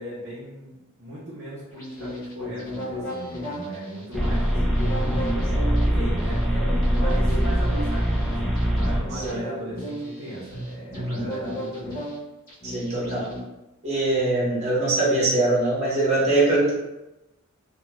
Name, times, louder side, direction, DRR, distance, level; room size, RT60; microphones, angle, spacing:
voice 1, 0.0-4.6 5.3-12.0, right 1 dB, 55° right, -10 dB, 0.7 m, -38 dB
sound 1, 1.7-13.4, equal, 40° left, 0.9 m, -34 dB
sound 2, 4.1-9.3, equal, ahead, 0.3 m, -23 dB
voice 2, 5.0-5.3 9.1-9.4 10.9-11.2 12.6-13.3 13.8-16.7, right 2 dB, 30° right, -7 dB, 0.9 m, -23 dB
2.3 x 2.2 x 3.0 m, 1.0 s
head